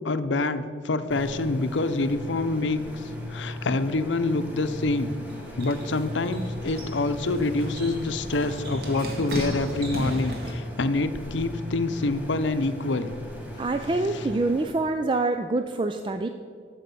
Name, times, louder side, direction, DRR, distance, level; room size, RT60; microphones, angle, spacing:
voice 1, 0.0-5.1 5.6-13.1, left 2 dB, 85° left, 10 dB, 0.7 m, -26 dB
sound 1, 1.1-14.6, left 1 dB, 10° right, 1.5 m, -37 dB
sound 2, 4.9-10.5, equal, 55° right, 1.9 m, -35 dB
voice 2, 13.6-16.3, right 2 dB, 25° right, 7 dB, 0.3 m, -26 dB
12.5 x 7.7 x 5.4 m, 2.3 s
head